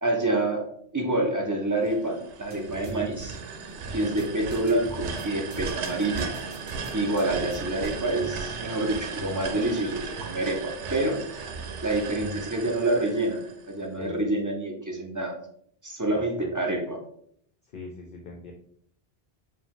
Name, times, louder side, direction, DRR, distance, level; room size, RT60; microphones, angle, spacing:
voice 1, 0.0-0.6 0.9-3.4 3.9-6.3 6.9-11.2 11.8-13.4 13.7-15.4 15.8-17.0, right 2 dB, 20° right, 0 dB, 0.5 m, -27 dB
sound 1, 1.8-13.9, right 5 dB, 85° right, 0.9 m, -36 dB
sound 2, 2.5-13.4, right 2 dB, 45° right, 0.9 m, -44 dB
voice 2, 14.0-14.3 16.1-16.5 17.7-18.5, left 3 dB, 60° left, 2 dB, 0.6 m, -42 dB
4.8 x 2.3 x 3.6 m, 0.65 s
omnidirectional pair, 1.2 m